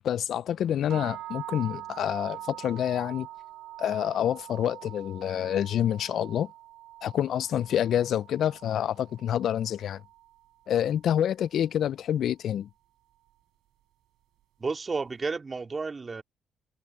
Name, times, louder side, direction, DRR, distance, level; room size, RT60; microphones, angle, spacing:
voice 1, 0.0-3.3 3.8-6.5 7.0-10.0 10.7-12.7, left 10 dB, 70° left, 0.4 m, -27 dB
sound 1, 0.9-11.0, right 14 dB, 90° right, 5.9 m, -44 dB
voice 2, 14.6-16.2, right 4 dB, 30° right, 2.2 m, -32 dB
cardioid pair, 90°, 0 cm